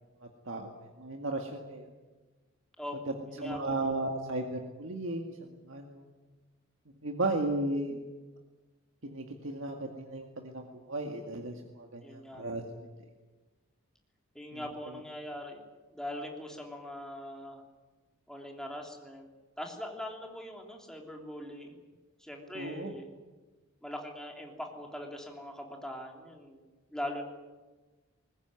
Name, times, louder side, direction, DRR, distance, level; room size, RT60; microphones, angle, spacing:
voice 1, 0.5-1.9 3.4-6.0 7.0-8.0 9.0-12.6 14.5-15.0 22.5-22.9, right 2 dB, 65° right, 2 dB, 2.1 m, -35 dB
voice 2, 2.8-3.9 12.0-12.4 14.3-15.6 15.9-17.6 18.3-19.3 19.6-21.9 22.2-23.1 23.8-26.6 26.9-27.2, left 1 dB, 5° left, 1 dB, 3.3 m, -41 dB
21.5 x 19.5 x 9.5 m, 1.3 s
head